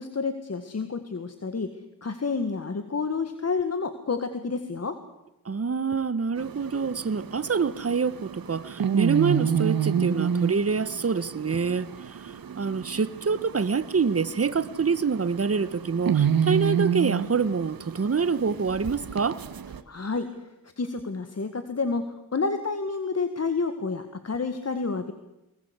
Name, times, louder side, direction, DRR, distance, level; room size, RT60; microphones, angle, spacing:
voice 1, 0.0-1.7 2.0-5.0 19.9-20.3 20.8-25.1, left 4 dB, 45° left, 1.9 m, -29 dB
voice 2, 5.4-11.9 12.5-19.4, right 5 dB, 40° right, 1.3 m, -26 dB
sound 1, 6.4-19.8, right 8 dB, 70° right, 1.6 m, -29 dB
23.5 x 21.0 x 8.2 m
cardioid pair, 65°, 36 cm